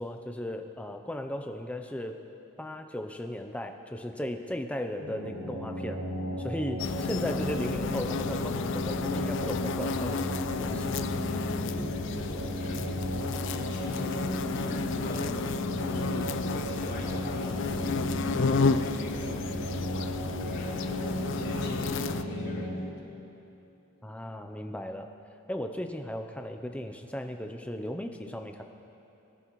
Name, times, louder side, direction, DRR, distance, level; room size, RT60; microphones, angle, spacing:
voice 1, 0.0-2.2 2.6-6.0 6.4-11.0 24.0-25.1 25.5-28.6, left 1 dB, 5° left, 5 dB, 0.5 m, -36 dB
sound 1, 5.0-22.8, equal, 80° right, 2.5 m, -34 dB
sound 2, 6.8-22.2, left 4 dB, 55° left, 0.4 m, -32 dB
voice 2, 11.3-15.5 15.8-22.9, left 1 dB, 85° left, -13 dB, 3.2 m, -43 dB
22.5 x 10.5 x 3.1 m, 2.9 s
head